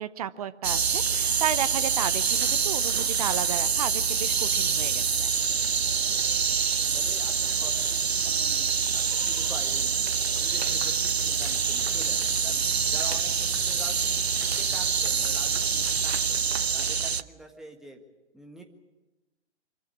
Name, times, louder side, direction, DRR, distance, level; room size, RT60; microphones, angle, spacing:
voice 1, 0.0-5.3, right 10 dB, 35° right, 14 dB, 0.7 m, -33 dB
sound 1, 0.6-17.2, right 6 dB, 65° right, 0.9 m, -26 dB
voice 2, 6.0-12.6 12.9-14.1 14.4-16.5 16.7-18.0 18.3-18.6, right 1 dB, ahead, 2 dB, 1.6 m, -46 dB
sound 2, 10.5-16.1, left 4 dB, 75° left, 6.9 m, -47 dB
25.5 x 15.0 x 9.9 m, 1.1 s
figure-of-eight pair, 130°, 34 cm